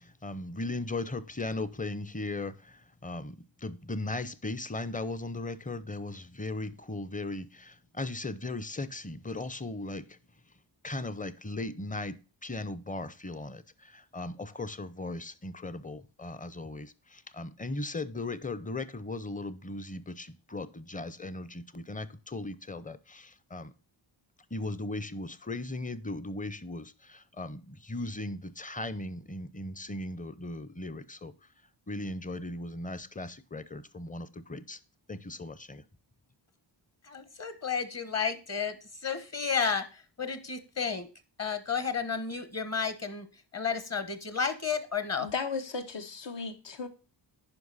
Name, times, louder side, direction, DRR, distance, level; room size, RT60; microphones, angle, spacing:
voice 1, 0.0-2.5 3.0-10.1 10.8-12.2 12.4-23.7 24.5-31.3 31.9-34.8 35.1-35.8, left 2 dB, 15° left, 0.6 m, -37 dB
voice 2, 37.1-38.7 39.0-41.1 41.4-43.3 43.5-45.3, left 6 dB, 35° left, 1.2 m, -32 dB
voice 3, 45.2-46.9, left 5 dB, 70° left, 1.3 m, -35 dB
9.9 x 5.5 x 4.0 m
wide cardioid pair, 100°, 46 cm